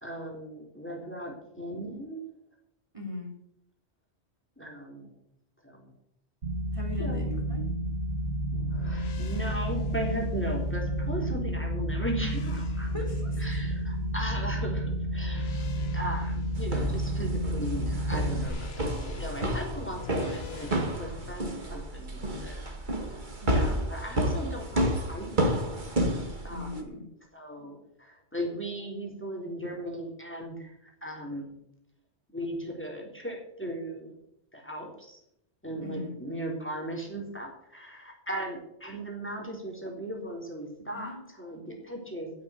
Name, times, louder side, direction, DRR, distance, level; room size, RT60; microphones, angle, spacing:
voice 1, 0.0-2.2 4.6-5.1 5.6-5.9 7.0-7.2 8.7-12.9 13.4-22.9 23.5-25.3 26.4-27.0 27.3-31.5 32.3-34.1 34.5-35.2 35.6-42.3, right 1 dB, 10° left, 0 dB, 3.7 m, -37 dB
voice 2, 2.9-3.4 6.7-7.6 10.6-10.7 12.9-13.4 23.4-23.8 26.5-27.1 35.8-36.2 40.9-41.2, left 2 dB, 30° right, -1 dB, 3.3 m, -38 dB
sound 1, 6.4-18.5, right 1 dB, 75° right, 2.6 m, -31 dB
sound 2, 8.5-21.3, left 6 dB, 65° left, 1.3 m, -42 dB
sound 3, 16.6-26.8, right 1 dB, 45° right, 2.0 m, -31 dB
15.5 x 6.7 x 8.3 m, 0.76 s
omnidirectional pair, 1.1 m